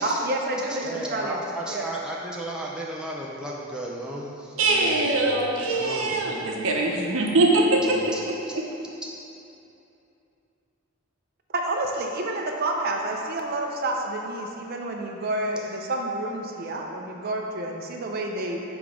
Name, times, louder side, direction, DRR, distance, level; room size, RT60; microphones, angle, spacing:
voice 1, 0.0-1.4 1.7-1.9 11.5-18.6, right 2 dB, 45° right, 1 dB, 0.6 m, -29 dB
voice 2, 0.8-6.7 7.8-8.2, right 1 dB, 5° right, -4 dB, 0.5 m, -35 dB
voice 3, 4.6-8.0 8.6-8.7, right 2 dB, 80° right, -1 dB, 0.8 m, -22 dB
7.1 x 3.5 x 4.9 m, 2.8 s
head